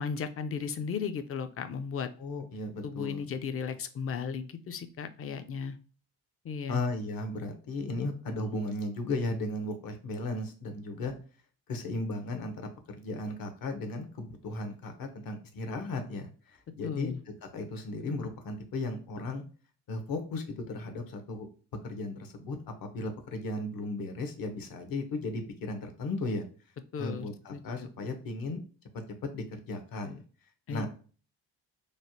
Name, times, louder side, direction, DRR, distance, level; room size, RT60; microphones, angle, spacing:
voice 1, 0.0-2.1 2.8-5.8 6.4-6.8 16.8-17.2 26.9-27.9 30.7-30.9, left 6 dB, 35° left, 10 dB, 0.5 m, -35 dB
voice 2, 2.2-3.2 6.7-11.1 11.7-12.7 13.0-17.1 17.5-19.4 19.9-21.5 21.8-22.6 22.9-26.5 27.0-28.6 29.3-30.2 30.7-30.9, left 2 dB, 60° left, 6 dB, 0.9 m, -35 dB
3.2 x 2.0 x 2.8 m, 0.39 s
supercardioid pair, 60°, 39 cm